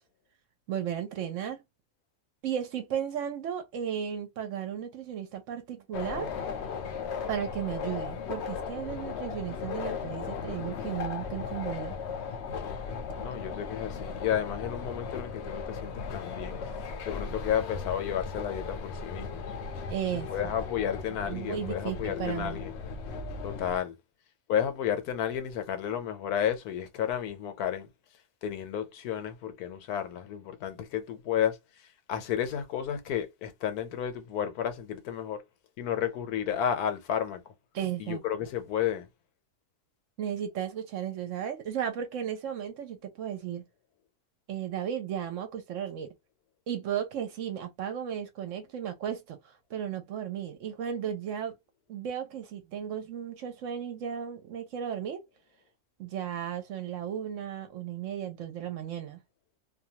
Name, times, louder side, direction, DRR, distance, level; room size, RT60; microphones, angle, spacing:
voice 1, 0.7-1.6 2.4-6.3 7.3-12.0 19.9-20.3 21.3-22.6 37.7-38.5 40.2-43.6 44.5-46.1 46.7-49.4 49.7-51.5 51.9-55.2 56.0-59.2, right 9 dB, 65° right, 0.9 m, -35 dB
sound 1, 5.9-23.8, left 5 dB, 60° left, 0.7 m, -37 dB
voice 2, 13.2-16.7 17.0-19.4 20.1-22.7 23.4-24.0 24.5-27.9 28.4-31.6 32.1-35.4 35.8-37.4 38.0-39.1, left 9 dB, 85° left, 1.2 m, -32 dB
2.6 x 2.3 x 2.8 m
omnidirectional pair, 1.6 m